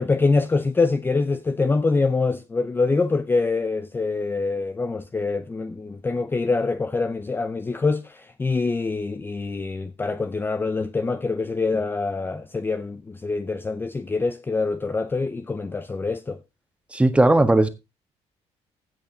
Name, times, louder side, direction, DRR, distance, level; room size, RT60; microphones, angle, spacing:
voice 1, 0.0-16.4, left 3 dB, 20° left, 0.6 m, -25 dB
voice 2, 16.9-17.7, right 2 dB, 10° right, 1.5 m, -17 dB
16.0 x 5.5 x 3.9 m
cardioid pair, 115°, 12 cm